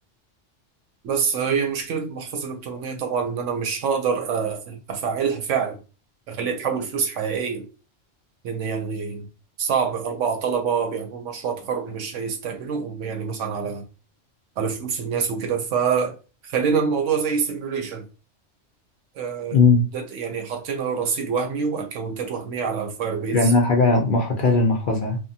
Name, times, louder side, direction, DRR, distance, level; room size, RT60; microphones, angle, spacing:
voice 1, 1.0-5.8 6.3-7.7 8.4-9.3 9.6-13.8 14.6-16.2 16.4-18.1 19.2-19.6 19.9-23.5, right 6 dB, 80° right, 1.0 m, -26 dB
voice 2, 19.5-19.8 23.3-25.2, left 3 dB, 55° left, 0.6 m, -18 dB
2.8 x 2.2 x 2.7 m
omnidirectional pair, 1.3 m